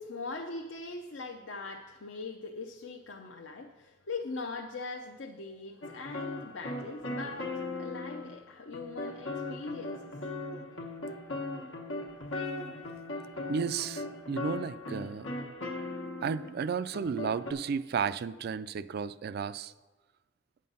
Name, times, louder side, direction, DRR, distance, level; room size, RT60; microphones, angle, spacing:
voice 1, 0.0-10.3, left 3 dB, 70° left, 3 dB, 0.7 m, -41 dB
sound 1, 5.8-8.4 8.7-16.5 16.9-17.5, left 2 dB, 85° left, 1.4 m, -38 dB
voice 2, 13.5-15.3 16.2-19.7, right 6 dB, 55° right, 15 dB, 0.3 m, -33 dB
9.2 x 7.5 x 5.5 m, 1.2 s
head